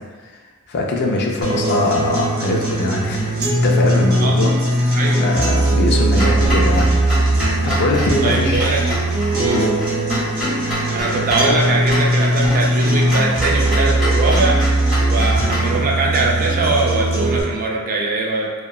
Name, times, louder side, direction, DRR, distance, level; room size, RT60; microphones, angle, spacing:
voice 1, 0.7-3.4 3.6-4.5 4.8-6.9 7.6-8.8 9.5-9.7, left 2 dB, 50° left, -1 dB, 0.4 m, -21 dB
sound 1, 1.4-17.4, right 1 dB, 65° right, 0.8 m, -19 dB
voice 2, 4.9-5.2 8.2-9.0 9.4-9.6 10.9-14.6 15.0-18.5, right 2 dB, 40° right, -2 dB, 0.4 m, -21 dB
Clock, 6.1-15.7, left 1 dB, 5° right, 1.4 m, -27 dB
2.7 x 2.2 x 2.3 m, 1.3 s
head